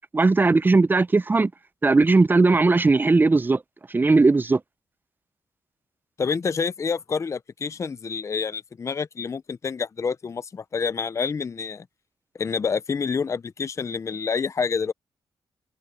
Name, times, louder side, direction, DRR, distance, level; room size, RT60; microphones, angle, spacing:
voice 1, 0.1-1.5 1.8-3.6 3.9-4.6, right 3 dB, 20° right, 0.6 m, -18 dB
voice 2, 6.2-11.9 12.4-14.9, left 5 dB, 35° left, 0.5 m, -28 dB
cardioid pair, 90°, 9 cm